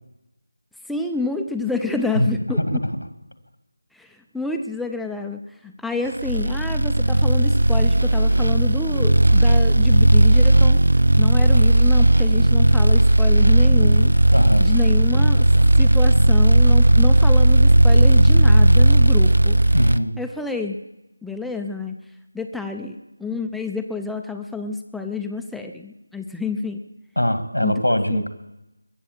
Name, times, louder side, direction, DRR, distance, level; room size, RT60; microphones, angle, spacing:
voice 1, 0.9-2.6 3.9-10.8 11.2-14.1 14.6-15.5 15.8-19.6 20.2-20.8 21.2-22.0 22.3-26.8 27.6-27.7 28.1-28.2, left 3 dB, ahead, 3 dB, 0.5 m, -29 dB
voice 2, 2.6-2.9 14.3-14.7 19.7-20.1 27.2-28.3, equal, 90° left, 9 dB, 2.1 m, -21 dB
sound 1, 6.2-20.0, right 1 dB, 65° right, 0.6 m, -15 dB
22.5 x 7.7 x 7.3 m, 0.95 s
figure-of-eight pair, 165°, 0 cm